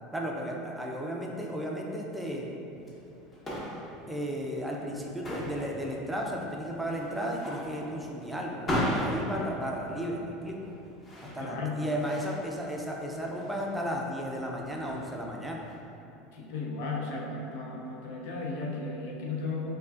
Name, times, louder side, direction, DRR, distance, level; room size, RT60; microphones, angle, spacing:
voice 1, 0.1-2.5 4.1-10.6 11.3-15.6, equal, 5° right, -1 dB, 0.5 m, -34 dB
sound 1, 2.7-15.7, equal, 25° left, 0.8 m, -37 dB
voice 2, 11.2-11.9 16.3-19.7, left 3 dB, 60° left, -2 dB, 0.5 m, -35 dB
4.3 x 2.4 x 2.4 m, 2.9 s
figure-of-eight pair, 75°, 0 cm